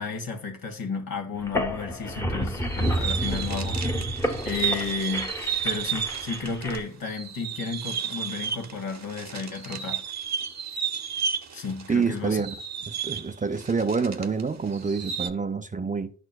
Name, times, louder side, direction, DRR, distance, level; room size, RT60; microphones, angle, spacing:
voice 1, 0.0-3.8 4.4-5.3 5.6-10.0 11.5-12.4, left 4 dB, 65° left, 1.5 m, -33 dB
sound 1, 1.4-6.8, equal, 10° left, 1.0 m, -30 dB
sound 2, 2.6-6.8 7.0-14.4 14.7-15.3, right 7 dB, 45° right, 0.8 m, -32 dB
voice 2, 11.9-12.6 12.9-16.1, right 5 dB, 20° right, 0.5 m, -27 dB
10.5 x 4.3 x 2.3 m
cardioid pair, 60°, 37 cm